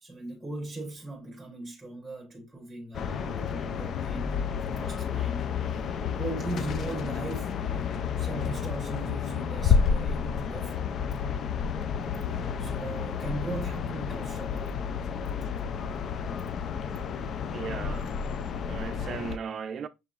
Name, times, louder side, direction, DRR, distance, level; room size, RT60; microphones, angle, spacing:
voice 1, 0.0-4.4 4.7-7.7 8.2-11.0 12.2-14.8, right 2 dB, 10° right, 1.0 m, -39 dB
sound 1, 2.9-19.4, left 6 dB, 45° left, 0.4 m, -30 dB
voice 2, 17.5-18.1 18.7-19.9, right 6 dB, 40° right, 0.5 m, -36 dB
6.3 x 2.8 x 2.4 m
cardioid pair, 120°, 0 cm